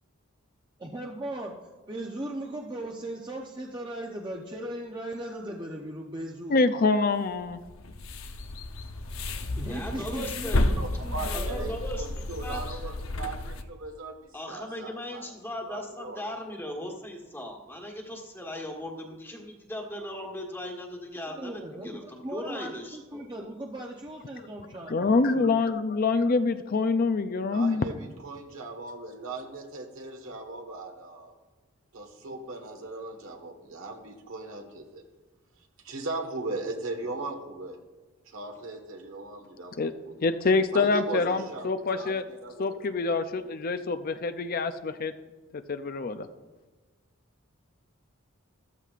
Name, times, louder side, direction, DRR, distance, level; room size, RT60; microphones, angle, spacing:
voice 1, 0.8-1.5 1.9-6.6 9.6-11.7 21.3-25.7, right 1 dB, 20° right, 0 dB, 0.7 m, -38 dB
voice 2, 6.5-7.6 24.9-27.8 39.8-39.9 40.2-42.2 42.6-45.1 45.7-46.3, left 3 dB, 45° left, 10 dB, 0.5 m, -25 dB
sound 1, 7.5-13.6, left 2 dB, 80° left, 0.8 m, -31 dB
voice 3, 9.6-10.6 11.3-12.8 14.3-23.2, left 1 dB, 10° left, 0 dB, 1.4 m, -38 dB
voice 4, 10.6-14.2 14.5-15.3 15.6-16.2 27.5-31.3 31.9-35.0 35.8-37.8 38.3-40.2 40.7-42.7, right 2 dB, 75° right, 4 dB, 1.5 m, -38 dB
13.5 x 13.5 x 2.5 m, 1.2 s
head